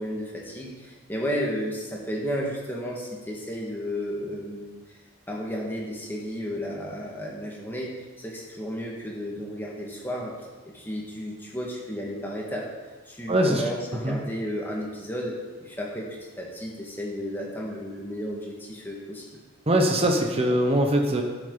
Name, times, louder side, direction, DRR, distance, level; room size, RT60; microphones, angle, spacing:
voice 1, 0.0-4.7 5.3-10.4 10.7-12.7 13.1-19.3, equal, 10° left, -3 dB, 1.8 m, -33 dB
voice 2, 13.3-13.6 14.0-14.2 19.7-21.2, right 1 dB, 30° right, 2 dB, 1.1 m, -22 dB
12.0 x 8.3 x 4.0 m, 1.3 s
head